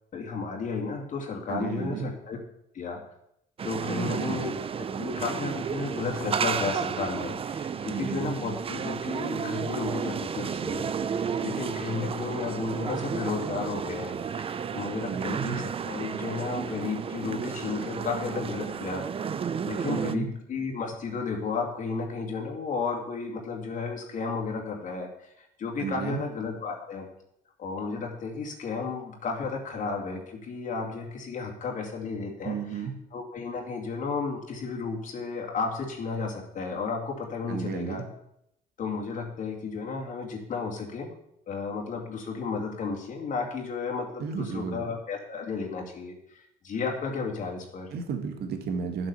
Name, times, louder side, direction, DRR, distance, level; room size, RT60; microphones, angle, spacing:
voice 1, 0.1-2.4 2.7-3.0 3.6-4.5 5.0-10.8 11.1-19.0 19.7-25.1 25.4-27.1 27.6-32.8 33.1-38.0 38.8-41.1 41.5-47.9, left 4 dB, 50° left, 0 dB, 2.5 m, -33 dB
voice 2, 1.5-2.1 3.8-4.4 7.9-8.3 15.1-15.6 19.8-20.3 25.8-26.2 32.4-33.0 37.5-38.1 44.2-44.8 47.9-49.1, right 6 dB, 70° right, 6 dB, 2.1 m, -33 dB
sound 1, 3.6-20.2, right 7 dB, 35° right, 0.6 m, -32 dB
10.0 x 7.7 x 7.0 m, 0.78 s
cardioid pair, 110°, 17 cm